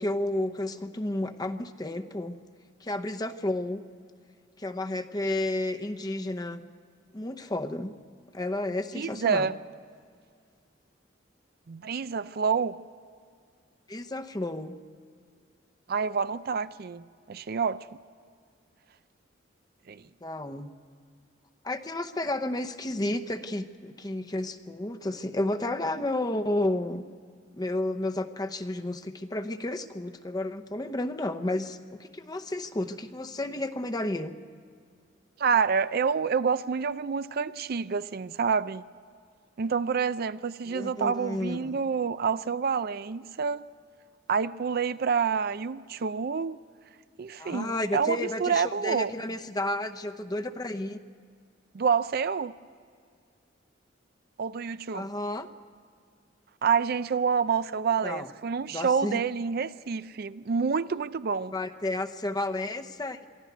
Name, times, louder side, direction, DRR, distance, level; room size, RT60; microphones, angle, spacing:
voice 1, 0.0-2.4 2.8-3.8 4.6-6.6 7.1-7.9 8.3-9.5 13.9-14.8 20.2-20.7 21.6-27.1 27.6-34.4 40.7-41.8 47.4-51.0 54.9-55.5 58.0-58.3 58.7-59.2 61.5-63.2, left 1 dB, 20° left, 7 dB, 0.8 m, -31 dB
voice 2, 8.9-9.6 11.7-12.7 15.9-17.8 19.9-20.0 35.4-38.8 39.6-43.6 44.3-46.6 47.2-49.1 51.7-52.5 54.4-55.1 56.6-61.5, right 6 dB, 55° right, 14 dB, 0.5 m, -28 dB
23.0 x 13.5 x 9.3 m, 2.2 s
head